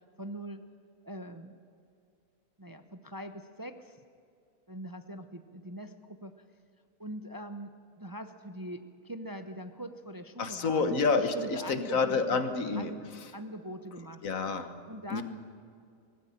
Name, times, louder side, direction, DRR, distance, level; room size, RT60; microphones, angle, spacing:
voice 1, 0.2-0.6 1.0-1.5 2.6-4.0 4.7-6.3 7.0-7.7 8.0-12.4 12.7-13.0 13.3-14.3 14.9-15.2, equal, 20° right, 8 dB, 0.7 m, -42 dB
voice 2, 10.4-13.3 14.2-14.7 15.1-15.2, left 4 dB, 75° left, 9 dB, 1.8 m, -29 dB
18.5 x 16.0 x 10.0 m, 2.4 s
omnidirectional pair, 1.4 m